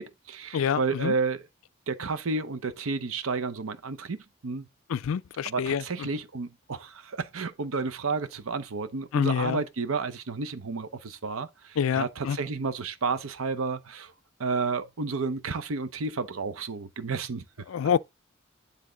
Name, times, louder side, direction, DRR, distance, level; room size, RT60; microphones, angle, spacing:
voice 1, 0.0-1.5 1.9-4.7 5.4-14.1 14.4-17.4, right 4 dB, 80° right, 0.7 m, -31 dB
voice 2, 0.5-1.1 4.9-5.8 9.1-9.6 11.8-12.4 17.7-18.0, left 7 dB, 75° left, 0.4 m, -26 dB
9.8 x 3.5 x 3.8 m
head